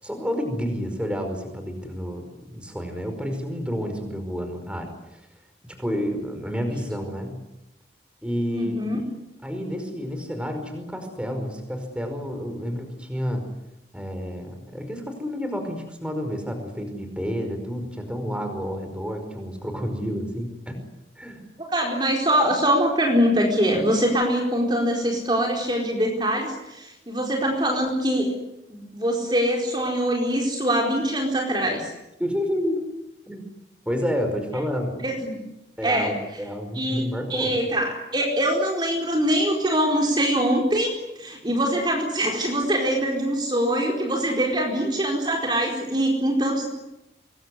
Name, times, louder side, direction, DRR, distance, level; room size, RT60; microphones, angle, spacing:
voice 1, 0.0-5.2 5.6-7.4 8.2-8.8 9.4-13.4 13.9-20.8 21.1-21.4 32.2-32.8 33.3-33.4 33.8-35.0 35.8-37.6, equal, 5° right, 6 dB, 5.1 m, -30 dB
voice 2, 8.5-9.0 21.6-28.3 28.7-31.9 35.0-35.4 35.8-36.1 36.8-46.7, equal, 25° right, 0 dB, 4.5 m, -23 dB
26.0 x 22.0 x 9.8 m, 0.90 s
head